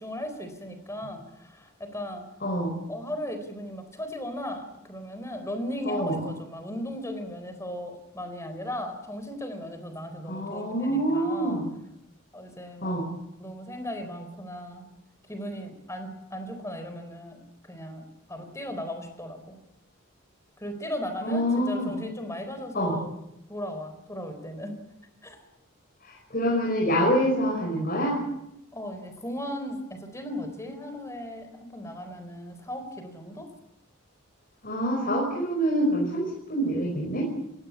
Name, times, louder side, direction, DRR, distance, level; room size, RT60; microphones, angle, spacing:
voice 1, 0.0-2.3 2.9-11.6 12.3-13.0 13.4-14.9 15.3-19.6 20.6-23.1 23.5-24.8 25.2-25.4 28.7-33.5, equal, 15° left, 8 dB, 4.1 m, -37 dB
voice 2, 2.4-2.8 5.9-6.3 10.3-11.7 12.8-13.1 21.2-21.9 22.7-23.0 26.0-28.2 34.6-37.3, equal, 45° left, -2 dB, 5.4 m, -26 dB
29.0 x 16.0 x 8.4 m, 0.81 s
head